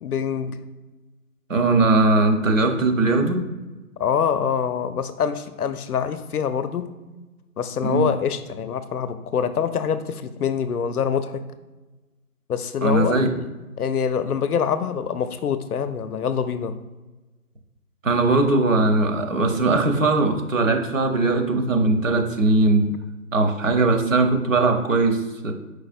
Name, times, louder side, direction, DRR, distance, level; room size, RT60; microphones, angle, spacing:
voice 1, 0.0-0.6 4.0-6.9 7.6-11.4 12.5-13.5 13.8-16.8, left 7 dB, 75° left, 12 dB, 0.5 m, -25 dB
voice 2, 1.5-3.4 7.8-8.1 12.8-13.3 18.0-22.9 23.3-25.5, right 2 dB, 55° right, 5 dB, 0.9 m, -20 dB
4.9 x 3.9 x 2.5 m, 1.2 s
figure-of-eight pair, 170°, 46 cm